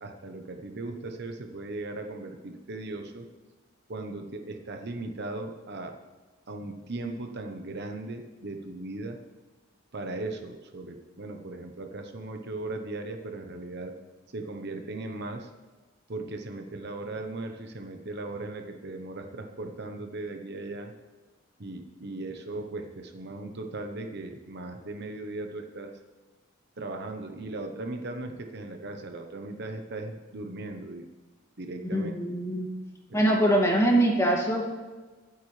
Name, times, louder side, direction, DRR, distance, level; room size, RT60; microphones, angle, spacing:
voice 1, 0.0-3.3 3.9-6.0 6.5-9.2 9.9-14.0 14.3-15.5 16.1-20.9 21.6-26.0 26.8-31.1 31.6-32.1 33.1-33.3, right 2 dB, 55° right, 5 dB, 0.9 m, -38 dB
voice 2, 31.9-32.7 33.1-34.7, right 1 dB, 15° left, -1 dB, 2.2 m, -23 dB
23.5 x 8.6 x 3.3 m, 1.3 s
head